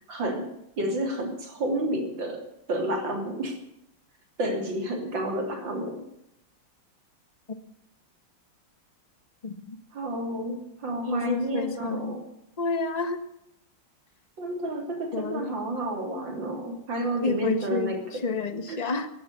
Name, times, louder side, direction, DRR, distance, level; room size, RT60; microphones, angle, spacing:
voice 1, 0.1-0.5 0.8-3.6 4.4-6.0 9.9-12.2 14.4-18.3 18.7-18.8, right 1 dB, 60° right, 4 dB, 3.9 m, -30 dB
voice 2, 9.4-9.8 11.1-12.2 12.6-13.2 15.1-15.5 17.2-19.1, left 3 dB, 25° left, 9 dB, 1.2 m, -29 dB
14.5 x 14.0 x 6.9 m, 0.78 s
omnidirectional pair, 2.3 m